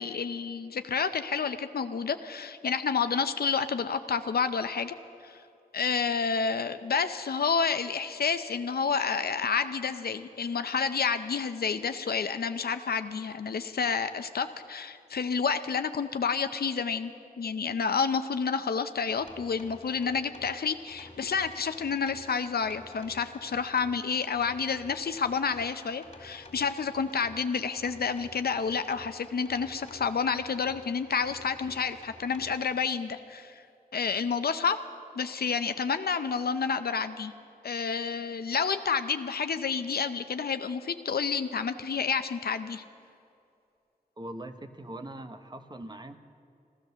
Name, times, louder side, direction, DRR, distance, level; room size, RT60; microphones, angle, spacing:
voice 1, 0.0-5.0 5.2-5.4 5.7-17.1 17.4-33.6 33.9-34.8 35.2-37.3 37.6-42.8, left 5 dB, 80° left, 10 dB, 0.6 m, -29 dB
sound 1, 19.1-32.8, left 2 dB, 45° left, 2.4 m, -52 dB
voice 2, 44.2-46.2, right 1 dB, 25° right, 7 dB, 0.9 m, -41 dB
15.0 x 13.0 x 6.8 m, 2.5 s
wide cardioid pair, 65°, 16 cm